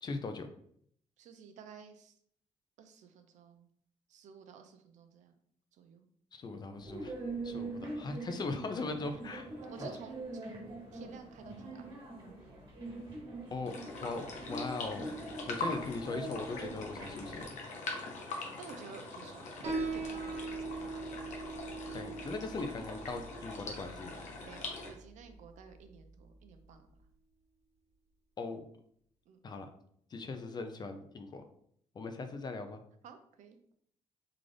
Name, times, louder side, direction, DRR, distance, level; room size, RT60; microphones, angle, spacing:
voice 1, 0.0-0.5 6.3-7.1 7.4-9.5 13.5-13.7 14.0-15.1 15.5-17.6 21.9-24.2 28.4-28.6 29.4-29.7 30.1-31.4 31.9-32.8, left 3 dB, 35° left, 7 dB, 0.4 m, -39 dB
voice 2, 1.2-2.1 2.8-3.7 4.1-5.3 5.7-6.1 7.5-7.7 9.3-12.0 15.4-15.6 18.6-19.5 19.8-20.7 24.4-26.9 29.3-29.4 33.0-33.7, right 6 dB, 75° right, 7 dB, 0.5 m, -53 dB
sound 1, 6.8-17.4, right 2 dB, 40° right, 1.5 m, -43 dB
sound 2, 13.6-24.9, left 2 dB, 70° left, 0.9 m, -43 dB
Piano, 19.6-26.7, right 3 dB, 60° right, 1.1 m, -42 dB
3.8 x 2.5 x 3.3 m, 0.67 s
cardioid pair, 120°, 13 cm